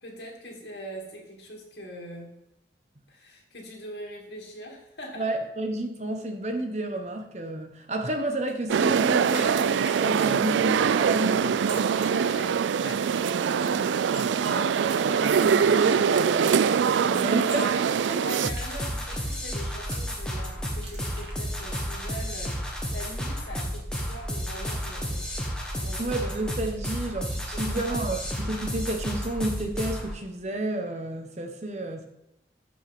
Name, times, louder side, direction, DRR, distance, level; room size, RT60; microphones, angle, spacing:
voice 1, 0.0-2.4 3.1-5.3 12.0-13.1 13.4-14.7 18.1-25.3 25.7-26.1 27.5-28.0, equal, 70° left, 0 dB, 2.5 m, -42 dB
voice 2, 5.1-11.6 13.3-18.2 26.0-32.1, right 1 dB, 40° right, 5 dB, 1.1 m, -31 dB
sound 1, 8.5-11.0 11.4-12.9 14.1-20.0 20.8-21.3, right 2 dB, 70° right, 2.5 m, -45 dB
sound 2, 8.7-18.5, right 7 dB, 85° right, 0.3 m, -23 dB
sound 3, 18.4-30.1, equal, 5° left, 1.3 m, -32 dB
13.0 x 5.3 x 3.6 m, 0.87 s
head